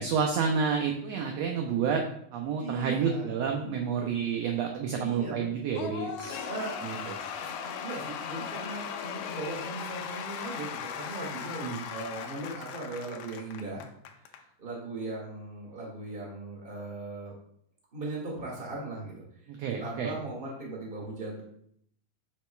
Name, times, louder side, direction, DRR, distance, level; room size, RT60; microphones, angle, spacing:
voice 1, 0.0-2.0 2.3-6.5 6.8-7.1 11.6-11.8 19.5-20.1, right 6 dB, 80° right, 2 dB, 1.5 m, -29 dB
voice 2, 2.6-3.3 4.9-5.5 6.4-6.7 7.3-13.8 14.2-17.3 17.9-19.2 19.6-21.4, right 2 dB, 20° right, -3 dB, 1.6 m, -38 dB
Cheering / Applause / Crowd, 5.7-14.4, left 7 dB, 75° left, 1.8 m, -38 dB
8.2 x 6.1 x 2.3 m, 0.68 s
omnidirectional pair, 3.6 m